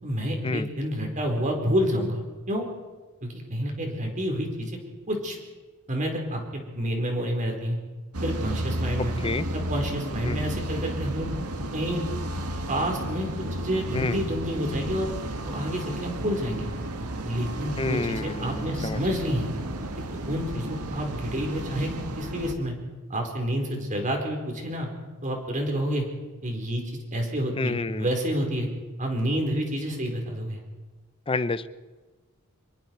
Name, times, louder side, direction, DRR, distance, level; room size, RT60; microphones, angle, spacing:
voice 1, 0.0-2.6 3.2-4.7 5.1-5.4 5.9-7.8 8.2-11.3 11.7-12.0 12.7-13.3 13.6-15.1 15.4-16.7 17.2-19.5 20.0-21.9 22.2-22.7 23.1-24.9 25.2-26.1 26.4-26.8 27.1-28.7 29.0-30.6, equal, 35° right, 2 dB, 4.4 m, -29 dB
sound 1, 8.1-22.5, right 1 dB, 80° right, 1.8 m, -33 dB
voice 2, 9.0-9.5 10.2-10.4 13.9-14.2 17.8-19.0 27.6-28.1 31.3-31.7, left 3 dB, 25° left, 14 dB, 0.7 m, -29 dB
25.5 x 22.0 x 4.7 m, 1.3 s
head